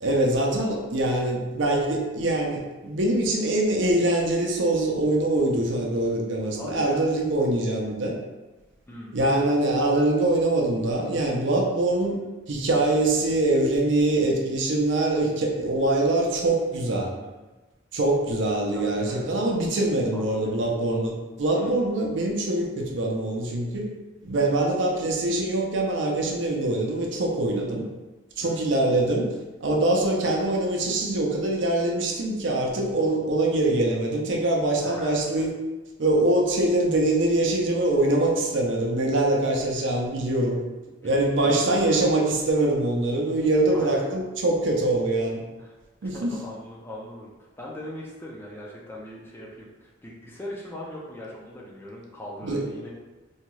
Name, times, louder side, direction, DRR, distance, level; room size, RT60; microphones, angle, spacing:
voice 1, 0.0-8.2 9.1-12.2 12.5-17.1 17.9-23.9 24.2-27.9 28.4-35.5 36.0-40.6 41.0-45.4 46.0-46.3 52.4-52.6, right 2 dB, 70° right, 0 dB, 0.5 m, -23 dB
voice 2, 6.6-7.1 8.9-9.4 12.0-12.1 17.2-17.3 18.7-19.3 20.1-20.7 21.5-21.8 24.4-24.5 28.4-28.6 34.8-35.2 40.9-41.9 43.7-44.1 45.6-45.8 46.0-52.9, left 1 dB, 10° left, -3 dB, 0.4 m, -41 dB
2.7 x 2.3 x 3.0 m, 1.2 s
head